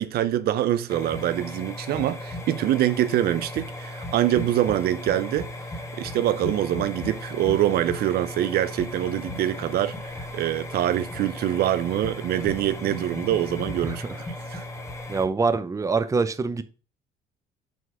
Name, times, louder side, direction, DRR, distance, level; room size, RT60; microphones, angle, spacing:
voice 1, 0.0-5.5 6.0-14.0 14.5-14.6, right 12 dB, 65° right, 0.6 m, -24 dB
sound 1, 0.9-15.3, left 1 dB, 15° left, 1.5 m, -36 dB
voice 2, 13.8-14.1 15.1-16.6, right 4 dB, 20° right, 0.7 m, -25 dB
6.4 x 5.4 x 4.8 m
cardioid pair, 110°, 17 cm